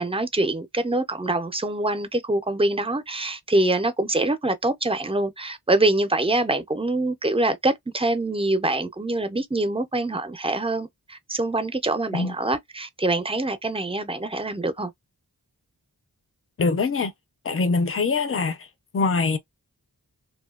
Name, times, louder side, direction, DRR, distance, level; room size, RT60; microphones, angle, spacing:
voice 1, 0.0-14.9, right 2 dB, 15° right, 0.5 m, -25 dB
voice 2, 16.6-17.1 17.4-18.7 18.9-19.4, left 4 dB, 35° left, 0.5 m, -23 dB
2.7 x 2.2 x 2.3 m
wide cardioid pair, 40°, 38 cm